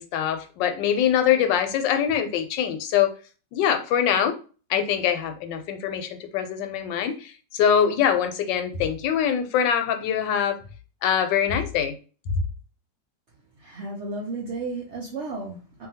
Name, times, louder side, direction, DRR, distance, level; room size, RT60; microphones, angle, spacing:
voice 1, 0.0-3.1 3.5-4.4 4.7-10.6 11.0-12.0, left 9 dB, 85° left, 7 dB, 1.3 m, -23 dB
voice 2, 13.6-15.9, right 3 dB, 75° right, -2 dB, 0.6 m, -33 dB
2.8 x 2.6 x 2.7 m, 0.36 s
omnidirectional pair, 1.9 m